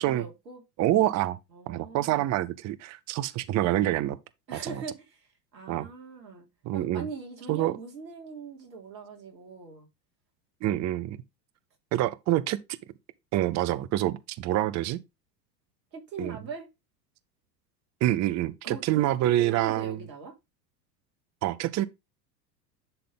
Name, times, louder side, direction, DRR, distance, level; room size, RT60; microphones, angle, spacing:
voice 1, 0.0-0.6 1.5-2.4 4.5-6.5 6.7-9.9 15.9-16.7 18.6-20.3, right 4 dB, 80° right, 3.7 m, -41 dB
voice 2, 0.8-1.4 1.7-4.2 4.5-4.8 5.7-5.9 6.6-7.1 7.5-7.7 10.6-11.2 11.9-12.6 13.3-15.0 16.2-16.4 18.0-20.0 21.4-21.8, right 14 dB, 35° right, 0.7 m, -26 dB
10.5 x 3.8 x 3.7 m
hypercardioid pair, 85°, 49 cm